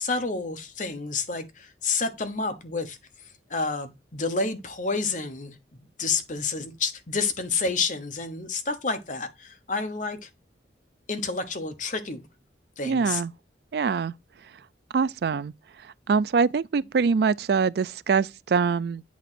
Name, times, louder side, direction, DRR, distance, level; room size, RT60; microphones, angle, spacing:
voice 1, 0.0-5.6 6.0-10.3 11.1-12.2 12.8-13.2, left 4 dB, 45° left, 1.1 m, -29 dB
voice 2, 12.8-13.3 13.7-14.1 14.9-15.5 16.1-19.0, right 5 dB, 60° right, 0.3 m, -24 dB
8.6 x 3.0 x 5.8 m
head